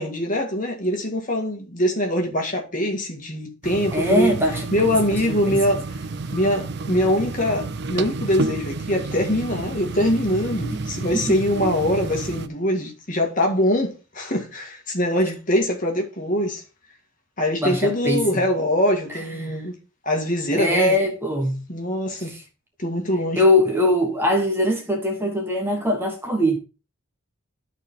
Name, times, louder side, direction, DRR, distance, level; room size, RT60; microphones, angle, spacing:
voice 1, 0.0-4.3 4.7-5.8 6.3-16.6 17.4-19.7 20.0-21.0 21.7-22.3 22.8-23.4, left 1 dB, 40° left, 1.9 m, -23 dB
sound 1, 3.6-12.5, right 3 dB, 55° right, 0.5 m, -31 dB
voice 2, 3.9-4.7 5.5-5.6 10.7-11.2 11.6-11.7 17.6-18.4 19.3-19.6 20.5-21.6 22.2-22.4 23.4-26.6, left 1 dB, 10° right, 1.3 m, -21 dB
12.5 x 4.3 x 3.7 m
head